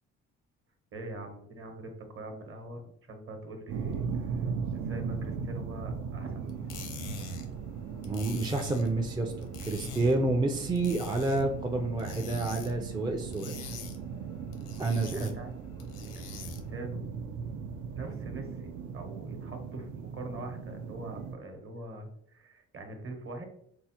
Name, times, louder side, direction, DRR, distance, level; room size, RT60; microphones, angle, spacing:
voice 1, 0.9-6.7 15.1-16.4 16.7-17.1 17.9-23.5, right 2 dB, 45° right, 5 dB, 0.9 m, -43 dB
sound 1, 3.7-21.3, right 6 dB, 75° right, 0.5 m, -38 dB
sound 2, 6.5-16.8, left 4 dB, 85° left, 0.7 m, -45 dB
voice 2, 8.0-13.5 14.8-15.4, right 2 dB, 15° right, 2 dB, 0.3 m, -29 dB
4.6 x 2.0 x 2.8 m, 0.69 s
cardioid pair, 90°, 30 cm